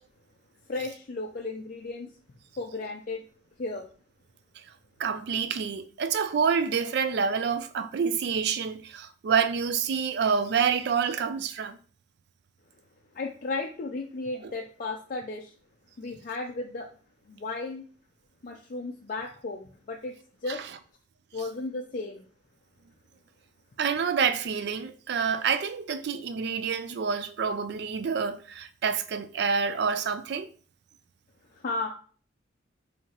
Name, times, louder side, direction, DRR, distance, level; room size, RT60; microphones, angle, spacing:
voice 1, 0.7-2.1 2.6-3.2 3.6-3.9 13.1-15.5 16.0-16.9 17.3-17.8 18.4-20.1 20.4-20.6 21.3-22.2 31.5-31.9, left 3 dB, 45° left, 0.4 m, -34 dB
voice 2, 5.0-11.8 14.4-14.5 20.5-20.7 23.8-30.5, right 6 dB, 60° right, 0.3 m, -27 dB
4.4 x 2.8 x 2.9 m
head